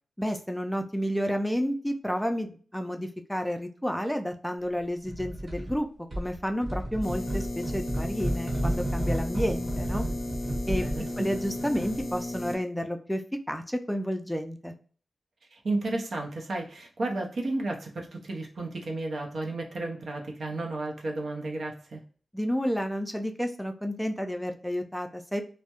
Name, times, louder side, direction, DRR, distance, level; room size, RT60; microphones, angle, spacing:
voice 1, 0.2-5.9 6.2-10.1 10.6-10.8 11.2-13.2 13.5-14.7 22.3-25.4, equal, 5° left, 5 dB, 0.4 m, -30 dB
sound 1, 5.1-5.8 6.1-12.1, right 1 dB, 55° right, 1.1 m, -32 dB
sound 2, 7.0-12.6, left 1 dB, 60° left, 0.5 m, -35 dB
voice 2, 10.8-11.3 15.5-22.0, right 2 dB, 70° right, 1 dB, 0.6 m, -33 dB
2.2 x 2.1 x 2.8 m, 0.41 s
cardioid pair, 50°, 0 cm